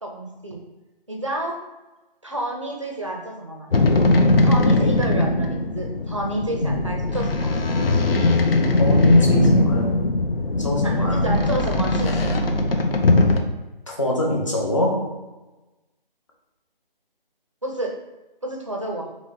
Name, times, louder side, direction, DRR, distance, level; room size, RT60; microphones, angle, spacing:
voice 1, 0.0-0.6 1.1-1.6 2.2-3.7 4.4-7.5 10.8-12.3 17.6-18.0 18.4-19.1, right 1 dB, 35° right, 1 dB, 0.5 m, -29 dB
sound 1, 3.7-13.4, left 2 dB, 75° left, 0.7 m, -20 dB
voice 2, 8.8-10.2 10.6-11.2 13.9-15.1, left 1 dB, 30° left, -1 dB, 0.7 m, -22 dB
4.0 x 3.0 x 3.8 m, 1.1 s
figure-of-eight pair, 175°, 29 cm